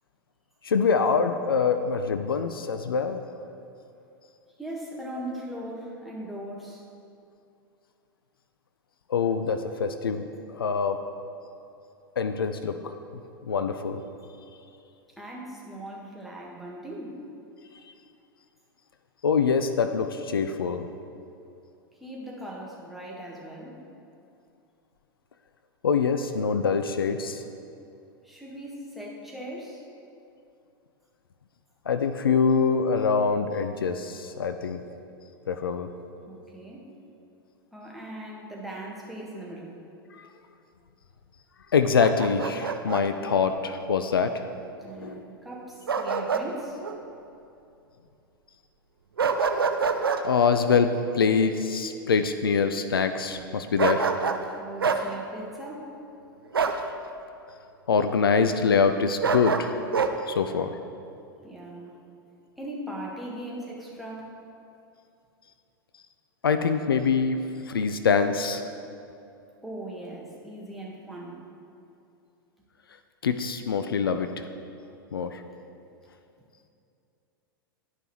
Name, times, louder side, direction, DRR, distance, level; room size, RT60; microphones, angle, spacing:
voice 1, 0.6-3.2 9.1-10.2 10.5-11.0 12.2-12.9 13.4-14.0 19.2-20.9 25.8-27.4 31.9-34.8 35.5-35.9 40.2-40.3 41.7-44.4 45.0-45.2 50.2-54.0 57.9-59.8 60.3-60.8 66.4-67.4 67.7-68.6 73.2-74.4 75.1-75.4, left 5 dB, 80° left, 9 dB, 0.4 m, -24 dB
voice 2, 4.6-6.8 15.2-17.2 22.0-23.8 28.2-29.9 36.3-37.0 37.7-39.8 44.8-46.8 54.6-56.0 61.4-62.0 62.6-64.3 69.6-71.5, right 1 dB, ahead, -4 dB, 1.5 m, -39 dB
Bark, 42.0-43.1 45.9-46.5 46.8-47.0 49.2-50.2 53.8-54.5 54.8-55.0 56.5-56.8 59.2-60.1, right 5 dB, 85° right, 0.5 m, -26 dB
11.5 x 5.5 x 3.1 m, 2.6 s
figure-of-eight pair, 95°, 12 cm